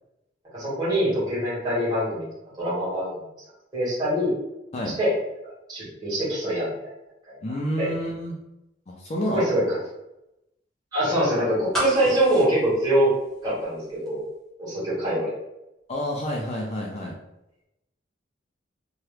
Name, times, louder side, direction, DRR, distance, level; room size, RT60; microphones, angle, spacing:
voice 1, 0.5-2.2 2.6-3.1 3.7-4.3 5.0-5.1 5.7-6.7 7.3-7.4 7.8-7.9 9.3-9.8 10.9-13.1 13.4-14.2 14.6-15.3, right 1 dB, 20° right, -10 dB, 1.5 m, -24 dB
voice 2, 7.4-8.4 8.9-9.4 15.9-17.1, equal, 35° left, -2 dB, 0.5 m, -29 dB
sound 1, 11.7-13.8 14.1-14.2, right 1 dB, ahead, 1.0 m, -31 dB
2.9 x 2.3 x 3.2 m, 0.90 s
head